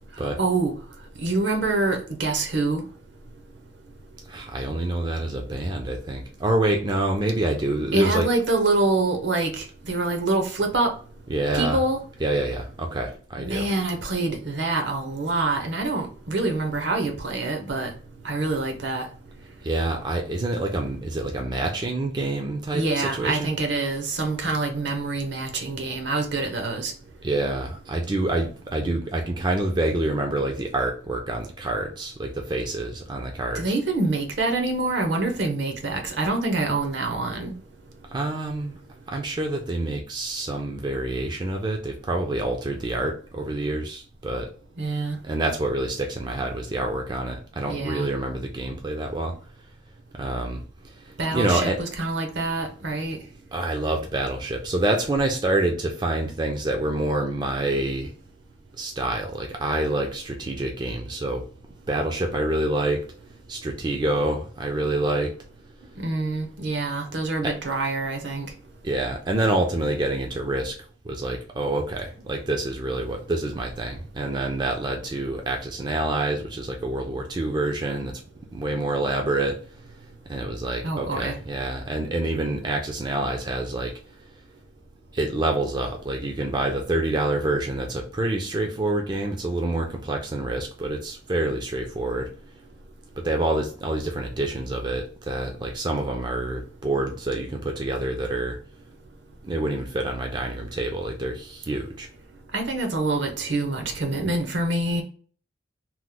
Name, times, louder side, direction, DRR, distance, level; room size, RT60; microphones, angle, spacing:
voice 1, 0.2-0.7 1.2-2.8 7.9-10.9 11.5-12.0 13.4-17.9 18.2-19.1 22.7-26.9 33.5-37.5 44.8-45.2 47.7-48.1 51.2-53.2 66.0-68.5 80.8-81.4 102.5-105.0, right 2 dB, 70° right, 0.7 m, -26 dB
voice 2, 4.3-8.3 11.3-11.8 12.2-13.7 19.6-23.5 27.2-33.6 38.1-38.8 39.1-44.5 45.2-49.3 50.1-51.8 53.5-58.1 58.8-61.4 61.9-63.0 63.5-65.3 67.4-67.5 68.8-70.8 71.0-78.2 78.5-79.6 80.3-83.9 85.1-92.3 93.2-98.6 99.4-102.1, right 2 dB, 25° right, 0.4 m, -27 dB
3.0 x 2.0 x 3.6 m
head